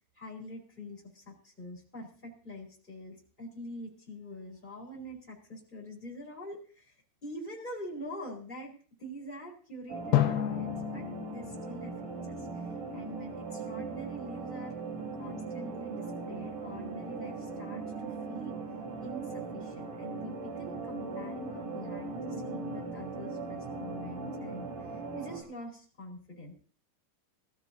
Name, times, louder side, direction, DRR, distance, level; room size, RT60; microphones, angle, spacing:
voice 1, 0.2-6.9 7.2-8.7 9.0-11.9 12.3-14.7 15.1-18.5 19.0-26.5, equal, 10° left, -2 dB, 4.3 m, -45 dB
sound 1, 9.9-25.4, right 4 dB, 55° right, 5.5 m, -39 dB
Drum, 10.1-13.0, left 13 dB, 80° left, 3.0 m, -32 dB
23.0 x 13.5 x 2.7 m, 0.41 s
omnidirectional pair, 4.5 m